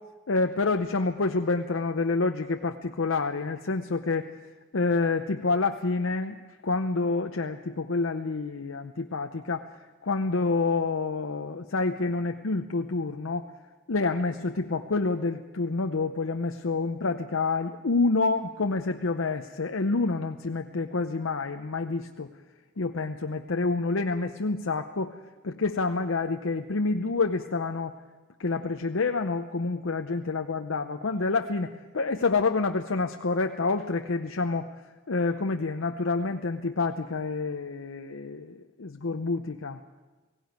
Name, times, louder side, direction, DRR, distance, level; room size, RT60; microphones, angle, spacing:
voice 1, 0.3-4.3 4.7-9.7 10.0-13.5 13.9-22.3 22.8-25.1 25.4-27.9 28.4-34.7 35.1-39.8, left 3 dB, 70° left, 5 dB, 0.7 m, -28 dB
17.5 x 17.0 x 9.3 m, 1.2 s
head